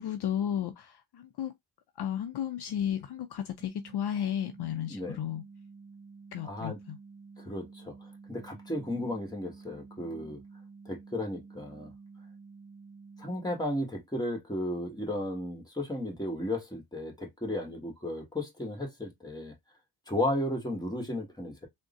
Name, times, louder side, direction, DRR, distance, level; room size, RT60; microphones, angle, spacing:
voice 1, 0.0-1.5 2.0-5.4 6.3-7.0, left 10 dB, 60° left, 0.5 m, -33 dB
sound 1, 3.6-13.6, right 4 dB, 15° right, 1.8 m, -51 dB
voice 2, 4.8-5.2 6.4-6.8 7.4-7.9 8.3-10.4 10.8-11.9 13.2-19.5 20.1-21.7, left 1 dB, 10° left, 1.5 m, -34 dB
3.6 x 2.1 x 2.5 m
cardioid pair, 75°, 47 cm